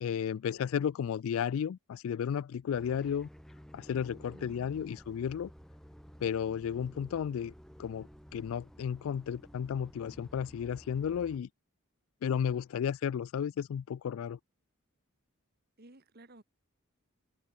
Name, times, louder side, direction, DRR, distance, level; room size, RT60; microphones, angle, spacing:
voice 1, 0.0-3.3 3.7-5.5 6.2-7.5 7.8-11.5 12.2-14.4, left 8 dB, 70° left, 0.3 m, -33 dB
sound 1, 2.7-11.4, equal, ahead, 4.7 m, -53 dB
voice 2, 4.3-5.0 15.8-16.4, right 1 dB, 45° right, 2.0 m, -56 dB
open air
head